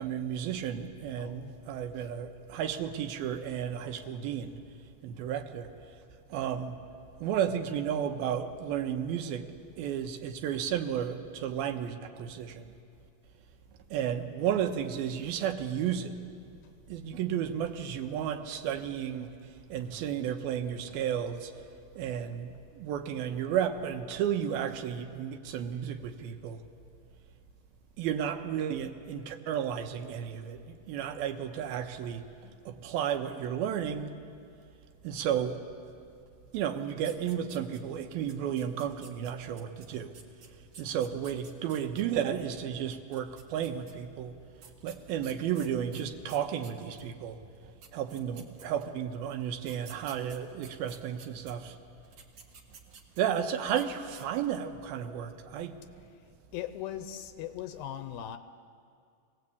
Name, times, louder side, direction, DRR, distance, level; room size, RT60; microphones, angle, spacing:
voice 1, 0.0-4.6 5.0-5.7 6.3-6.8 7.2-9.4 9.8-12.7 13.9-16.1 16.9-19.3 19.7-21.7 22.0-26.6 28.0-34.2 35.0-35.6 36.5-40.1 40.8-44.3 44.8-47.4 47.9-51.8 53.2-55.8, right 9 dB, 80° right, 7 dB, 2.8 m, -33 dB
voice 2, 1.1-1.6 2.0-2.1 16.6-16.7 18.6-18.8 19.7-19.9 20.3-20.6 24.8-25.1 25.4-25.5 48.5-48.8 56.0-58.4, left 11 dB, 80° left, 10 dB, 2.5 m, -42 dB
sound 1, 37.0-38.0 38.3-42.0 43.0-43.9 44.6-47.1 47.5-47.6 47.8-49.0 49.6-51.5 52.0-53.4 53.7-53.9 54.1-54.6, right 5 dB, 50° right, 2.1 m, -52 dB
24.0 x 18.0 x 8.3 m, 2.3 s
omnidirectional pair, 4.4 m